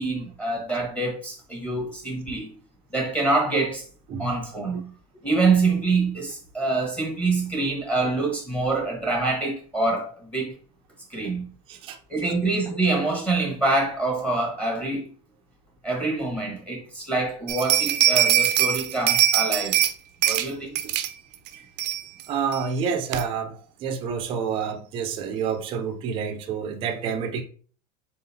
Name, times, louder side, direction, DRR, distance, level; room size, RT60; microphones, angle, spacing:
voice 1, 0.0-2.5 2.9-3.8 4.2-4.9 5.2-10.5 11.1-11.5 12.1-15.1 15.8-19.8 20.2-20.7, right 3 dB, 5° left, 1.1 m, -25 dB
sound 1, 17.5-19.9 20.2-20.5 20.8-21.1 21.5-21.6 21.8-22.2 22.5-22.6 23.1-23.2, right 11 dB, 85° right, 0.5 m, -21 dB
voice 2, 22.3-27.4, right 6 dB, 25° right, 0.5 m, -28 dB
4.0 x 3.8 x 2.7 m
supercardioid pair, 160°, 21 cm